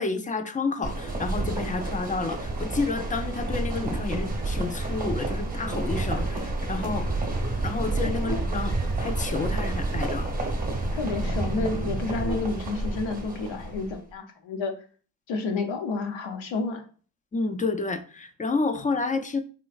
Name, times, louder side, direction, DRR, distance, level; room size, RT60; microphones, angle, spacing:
voice 1, 0.0-7.1 7.6-8.7 9.0-10.3 17.3-19.4, left 3 dB, 20° left, 0.4 m, -30 dB
sound 1, 0.8-14.0, right 2 dB, 20° right, 0.9 m, -29 dB
voice 2, 10.9-14.7 15.3-16.8, left 4 dB, 75° left, 0.8 m, -30 dB
3.1 x 3.0 x 2.4 m
supercardioid pair, 60°, 46 cm